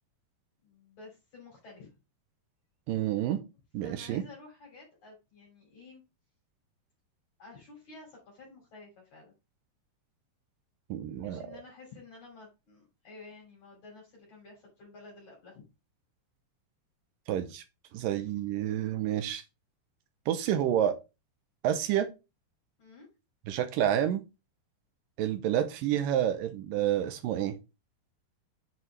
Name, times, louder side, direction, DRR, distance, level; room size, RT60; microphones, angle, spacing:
voice 1, 0.6-2.0 3.8-6.0 7.4-9.3 11.1-15.6 22.8-23.1, left 3 dB, 50° left, -2 dB, 3.9 m, -51 dB
voice 2, 2.9-3.4 3.7-4.2 10.9-11.5 17.3-17.6 17.9-19.4 20.3-21.0 21.6-22.1 23.5-24.2 25.2-27.6, right 11 dB, 75° right, 8 dB, 2.1 m, -29 dB
8.0 x 4.9 x 3.2 m, 0.27 s
omnidirectional pair, 4.7 m